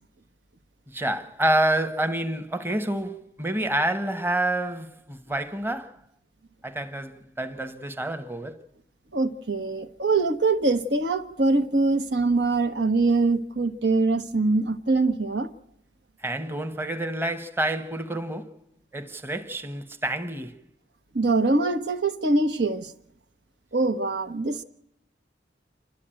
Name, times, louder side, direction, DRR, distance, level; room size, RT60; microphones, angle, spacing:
voice 1, 0.9-6.0 6.6-8.6 16.2-18.5 18.9-20.6, right 1 dB, 15° right, 1.0 m, -28 dB
voice 2, 9.1-15.5 21.1-22.9 23.7-24.6, right 3 dB, 80° right, 1.2 m, -23 dB
28.0 x 12.0 x 8.8 m
head